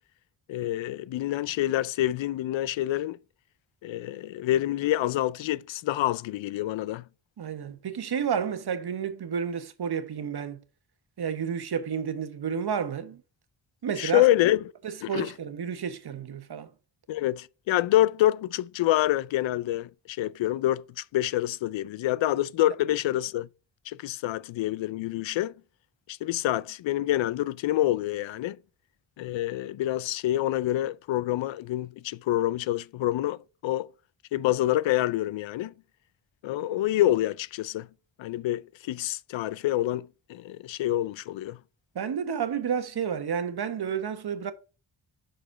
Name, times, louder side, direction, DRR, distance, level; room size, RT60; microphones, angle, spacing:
voice 1, 0.5-3.2 3.8-7.0 14.0-14.6 15.0-15.3 17.1-23.5 23.9-25.5 26.1-28.6 29.2-33.9 34.3-35.7 36.4-37.9 38.2-41.6, left 14 dB, 85° left, 0.5 m, -27 dB
voice 2, 7.4-10.6 11.2-13.2 13.8-14.3 14.8-16.7 41.9-44.5, right 7 dB, 60° right, 1.2 m, -31 dB
6.3 x 4.9 x 4.7 m
cardioid pair, 65°, 44 cm